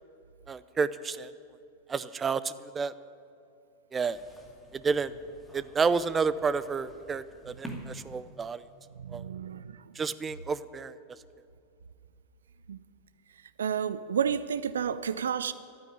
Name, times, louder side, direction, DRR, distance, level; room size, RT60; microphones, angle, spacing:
voice 1, 0.5-1.3 1.9-2.9 3.9-4.2 4.7-5.1 5.5-8.6 9.1-9.2 10.0-10.9, right 5 dB, 20° right, 16 dB, 0.5 m, -30 dB
sound 1, 4.1-8.9, right 1 dB, 5° left, 2.2 m, -48 dB
voice 2, 9.0-9.8 12.7-12.8 13.6-15.5, right 7 dB, 65° right, 15 dB, 0.6 m, -31 dB
12.0 x 9.3 x 10.0 m, 2.5 s
figure-of-eight pair, 90°, 0 cm